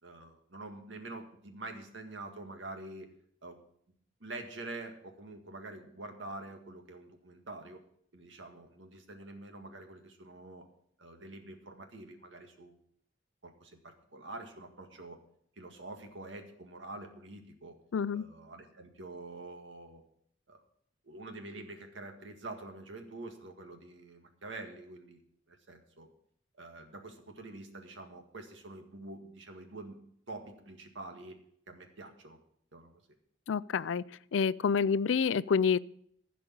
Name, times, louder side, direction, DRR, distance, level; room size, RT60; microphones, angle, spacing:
voice 1, 0.0-3.1 3.4-3.6 4.2-7.8 8.1-10.7 11.0-12.8 13.4-15.2 15.6-17.8 18.1-20.0 20.5-20.6 21.0-25.2 25.5-26.1 26.6-30.0 30.3-31.4 31.7-32.4 32.7-33.0, right 2 dB, 75° right, 1.9 m, -46 dB
voice 2, 17.9-18.2 33.5-34.0 34.3-35.8, left 6 dB, 80° left, 0.4 m, -28 dB
15.0 x 5.2 x 8.6 m
head